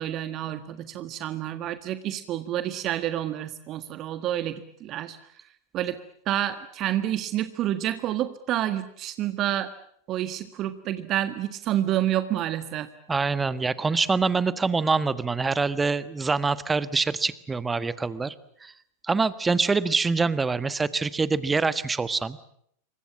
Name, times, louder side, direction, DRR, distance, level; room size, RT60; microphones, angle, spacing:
voice 1, 0.0-5.2 5.7-6.0 6.3-9.7 10.1-12.9, right 12 dB, 35° right, 11 dB, 1.6 m, -29 dB
voice 2, 13.1-18.3 18.6-18.7 19.0-22.4, right 4 dB, 10° right, 15 dB, 1.4 m, -25 dB
28.0 x 24.5 x 7.4 m, 0.70 s
figure-of-eight pair, 90°, 0 cm